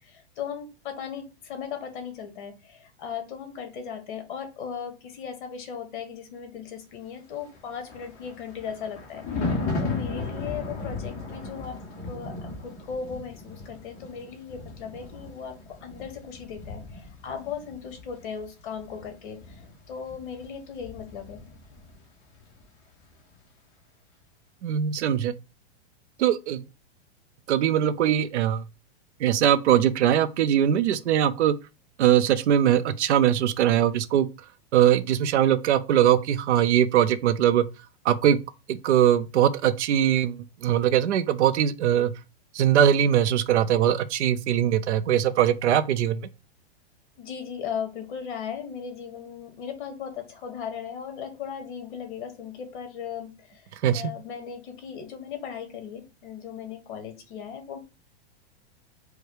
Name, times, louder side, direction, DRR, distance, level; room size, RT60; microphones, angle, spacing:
voice 1, 0.0-11.8 12.1-19.5 19.9-21.4 47.2-53.6 53.9-57.8, left 7 dB, 45° left, 1.4 m, -37 dB
Thunder, 7.5-22.0 22.3-22.6, left 3 dB, 20° left, 1.0 m, -36 dB
voice 2, 24.6-25.3 26.2-26.6 27.5-28.6 29.2-31.5 32.0-34.3 34.7-37.7 38.0-38.4 38.7-42.1 42.5-46.3 53.8-54.1, right 10 dB, 90° right, 0.6 m, -21 dB
4.7 x 2.3 x 4.7 m
supercardioid pair, 170°, 34 cm